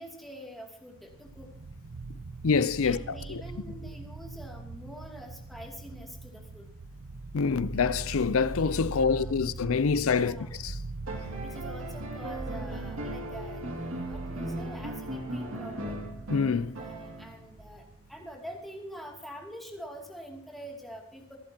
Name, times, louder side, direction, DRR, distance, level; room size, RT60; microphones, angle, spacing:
voice 1, 0.0-1.5 2.8-6.7 8.8-9.5 9.9-10.5 11.4-13.7 14.0-16.1 16.8-21.4, equal, ahead, 2.6 m, -45 dB
sound 1, 0.9-18.3, right 3 dB, 85° right, 0.9 m, -41 dB
voice 2, 2.4-3.0 3.3-3.4 7.3-10.4 10.6-10.7 16.3-16.8, left 5 dB, 80° left, 0.5 m, -26 dB
sound 2, 11.0-17.5 19.0-19.1, right 1 dB, 70° right, 2.5 m, -38 dB
26.5 x 11.0 x 2.9 m
head